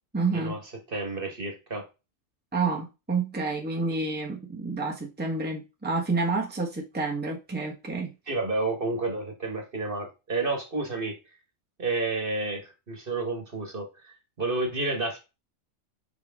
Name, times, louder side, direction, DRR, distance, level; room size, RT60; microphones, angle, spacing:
voice 1, 0.1-0.6 2.5-8.1, right 3 dB, 10° right, -1 dB, 1.3 m, -29 dB
voice 2, 0.9-1.9 8.3-11.2 11.8-15.2, right 3 dB, 40° right, 4 dB, 1.7 m, -30 dB
6.0 x 5.1 x 3.6 m, 0.27 s
omnidirectional pair, 1.4 m